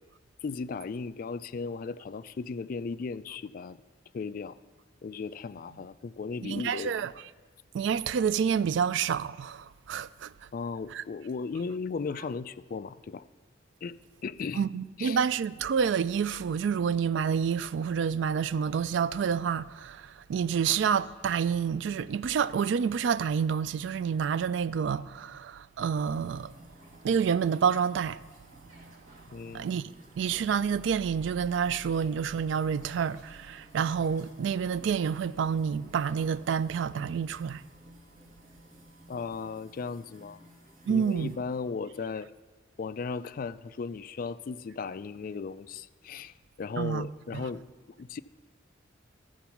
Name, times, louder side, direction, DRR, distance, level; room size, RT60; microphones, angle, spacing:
voice 1, 0.4-3.8 4.1-4.6 5.0-6.9 10.5-13.2 13.8-14.7 15.0-15.2 29.3-29.7 39.1-40.4 40.9-42.3 42.8-47.6 48.0-48.2, left 4 dB, 45° left, 0.3 m, -36 dB
voice 2, 6.4-7.1 7.7-10.3 10.9-11.0 14.6-26.5 27.0-28.2 29.5-37.6 40.9-41.4 46.8-47.1, right 7 dB, 65° right, 0.3 m, -28 dB
sound 1, 25.9-41.4, equal, 40° right, 2.0 m, -55 dB
14.5 x 7.0 x 5.8 m
head